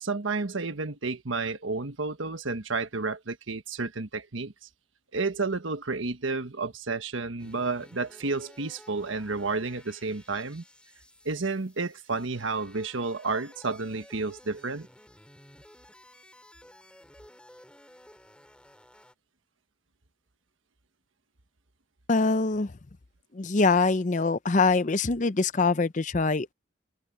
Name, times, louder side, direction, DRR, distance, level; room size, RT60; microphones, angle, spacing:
voice 1, 0.0-4.5 5.1-10.6 11.2-14.9, right 3 dB, 85° right, 1.4 m, -31 dB
sound 1, 7.4-19.1, left 1 dB, 5° left, 7.1 m, -54 dB
voice 2, 22.1-22.7 23.3-26.5, left 3 dB, 40° left, 0.6 m, -24 dB
head